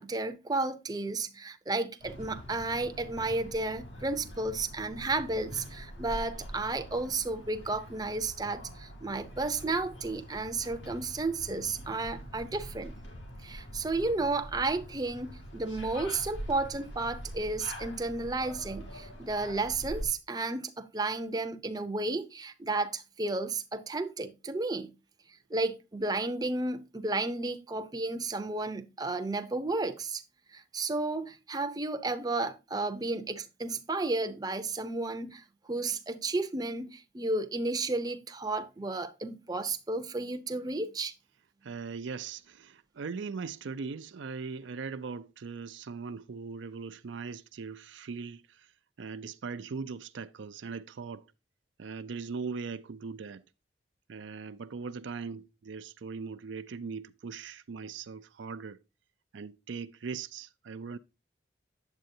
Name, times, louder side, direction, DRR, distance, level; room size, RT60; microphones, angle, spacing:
voice 1, 0.0-12.9 13.4-24.9 25.5-30.2 30.5-41.1, right 3 dB, 20° right, 0.6 m, -32 dB
sound 1, 2.0-20.1, equal, 90° left, 2.8 m, -44 dB
voice 2, 41.6-48.7 49.0-51.2 51.8-53.4 54.1-58.8 59.3-61.0, right 5 dB, 75° right, 0.5 m, -40 dB
9.0 x 7.5 x 2.7 m
head